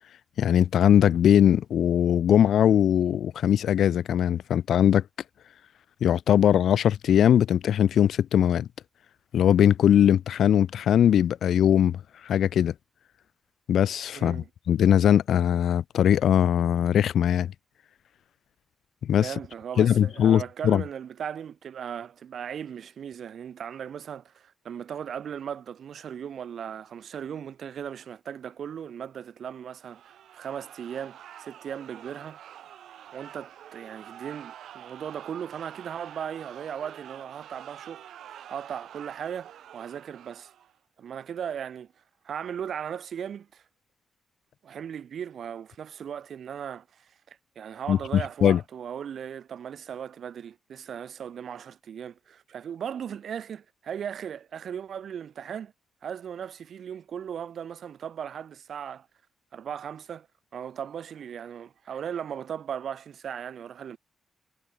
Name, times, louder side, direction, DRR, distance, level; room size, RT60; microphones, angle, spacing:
voice 1, 0.4-5.0 6.0-8.7 9.3-12.7 13.7-17.5 19.0-19.3 19.8-20.8 47.9-48.6, left 9 dB, 70° left, 0.5 m, -21 dB
voice 2, 14.1-14.5 19.2-32.4 32.7-32.8 33.1-38.1 38.5-40.5 41.0-41.9 42.2-43.6 44.6-55.7 56.0-59.1 59.5-60.3 60.5-64.0, right 8 dB, 55° right, 0.9 m, -37 dB
sound 1, 29.8-40.8, right 11 dB, 90° right, 1.1 m, -47 dB
wide cardioid pair, 165°, 0 cm